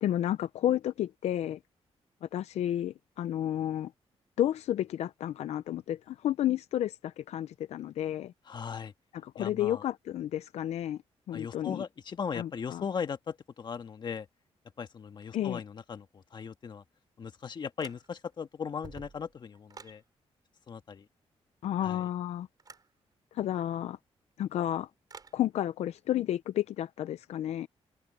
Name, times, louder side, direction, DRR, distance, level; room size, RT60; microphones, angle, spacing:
voice 1, 0.0-1.6 2.2-3.9 4.4-8.3 9.1-11.0 11.3-11.8 12.3-12.8 15.3-15.6 21.6-22.5 23.3-24.0 24.4-24.9 25.3-27.7, left 12 dB, 85° left, 0.5 m, -31 dB
voice 2, 8.5-8.9 9.4-9.8 11.3-14.3 14.8-16.8 17.2-20.0 20.7-21.1 21.8-22.0, left 6 dB, 45° left, 1.5 m, -38 dB
sound 1, 17.8-18.4 18.7-20.0 22.6-22.9 25.1-25.4, right 5 dB, 35° right, 7.5 m, -50 dB
open air
wide cardioid pair, 135°, 11 cm